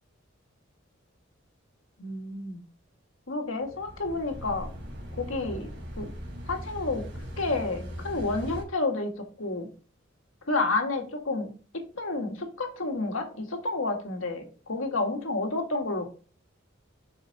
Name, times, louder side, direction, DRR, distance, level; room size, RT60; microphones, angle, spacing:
voice 1, 2.0-2.6 3.3-4.7 5.2-5.7 6.0-6.1 6.5-7.0 7.4-9.1 9.4-9.7 10.5-16.0, left 3 dB, 75° left, 3 dB, 1.9 m, -30 dB
sound 1, 3.6-8.6, equal, 60° right, 3.5 m, -39 dB
7.3 x 6.1 x 4.1 m, 0.37 s
head